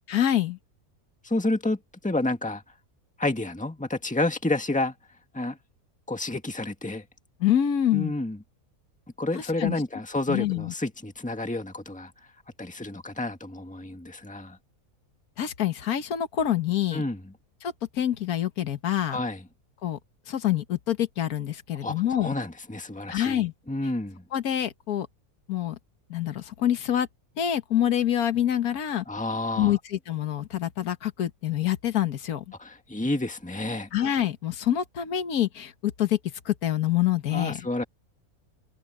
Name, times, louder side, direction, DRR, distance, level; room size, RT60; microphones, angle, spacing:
voice 1, 0.1-0.6 7.4-8.2 9.3-9.8 10.3-10.7 15.4-17.0 17.6-19.2 19.8-20.0 20.3-22.3 23.1-23.5 24.3-25.1 25.5-25.8 26.1-27.1 27.4-29.0 29.6-32.4 33.9-36.2 36.4-37.7, left 11 dB, 80° left, 1.7 m, -26 dB
voice 2, 1.2-1.8 2.0-2.6 3.2-4.9 5.3-5.6 6.1-7.0 7.9-8.4 9.2-12.1 12.6-14.6 16.9-17.2 19.1-19.4 21.8-24.2 29.1-29.8 32.6-33.9 37.3-37.8, left 2 dB, 5° left, 1.7 m, -30 dB
omnidirectional pair, 1.5 m